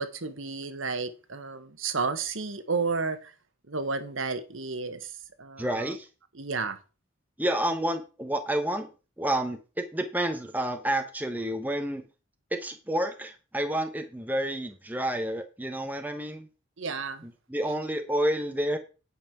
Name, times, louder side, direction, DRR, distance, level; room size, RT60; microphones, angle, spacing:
voice 1, 0.0-3.3 3.7-5.1 5.4-5.9 6.4-6.8 16.8-17.2, right 4 dB, 70° right, 1.3 m, -32 dB
voice 2, 5.6-6.1 7.4-8.9 9.2-12.0 12.5-16.5 17.2-18.8, right 1 dB, 10° right, 0.9 m, -29 dB
9.4 x 5.6 x 5.9 m
head